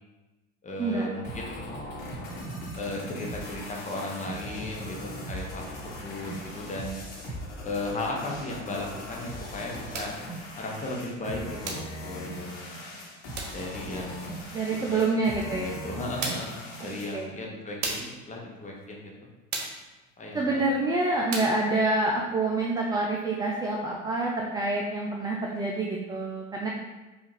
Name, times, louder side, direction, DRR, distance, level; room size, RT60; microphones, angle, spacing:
voice 1, 0.6-1.6 2.7-5.0 5.3-7.0 7.6-10.1 10.6-12.7 13.5-14.4 14.9-15.0 15.4-19.3 20.2-20.6, left 2 dB, 20° left, -1 dB, 1.0 m, -36 dB
sound 1, 1.2-17.2, equal, 65° left, 1.4 m, -39 dB
sound 2, 9.9-10.2 11.7-12.0 13.4-13.6 15.4-15.5 16.2-16.6 17.8-18.2 19.5-19.9 21.3-21.6, right 3 dB, 65° right, 0.8 m, -34 dB
voice 2, 14.5-15.8 17.1-17.4 20.3-26.7, right 2 dB, 10° right, -1 dB, 0.3 m, -27 dB
4.6 x 2.4 x 3.2 m, 1.1 s
hypercardioid pair, 70°, 38 cm